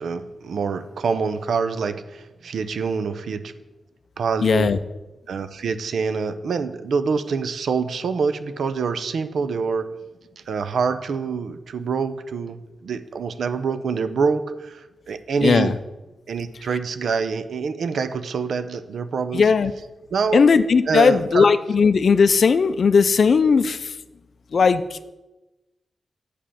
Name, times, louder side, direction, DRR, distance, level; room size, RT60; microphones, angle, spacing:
voice 1, 0.0-3.5 4.2-4.7 5.3-9.9 10.5-12.6 12.8-15.7 16.3-19.5 20.1-20.4 20.9-21.5, right 5 dB, 75° right, 11 dB, 0.6 m, -25 dB
voice 2, 4.4-4.8 15.4-15.7 19.3-19.7 20.3-23.9 24.5-25.0, left 5 dB, 55° left, 13 dB, 0.4 m, -17 dB
8.4 x 5.2 x 5.7 m, 1.1 s
wide cardioid pair, 110°, 0 cm